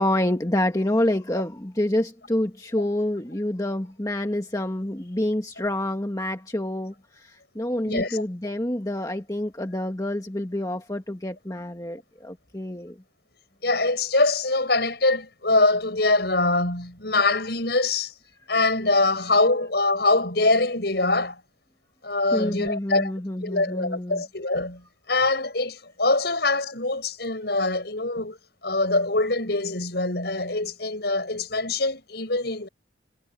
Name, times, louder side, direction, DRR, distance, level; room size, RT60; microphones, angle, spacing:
voice 1, 0.0-13.0 22.3-24.2, left 1 dB, 20° left, 1.6 m, -27 dB
voice 2, 7.8-8.2 13.6-18.1 18.5-21.4 22.0-23.1 23.4-24.8 25.1-28.4 28.6-32.7, left 2 dB, 60° left, 7.0 m, -23 dB
head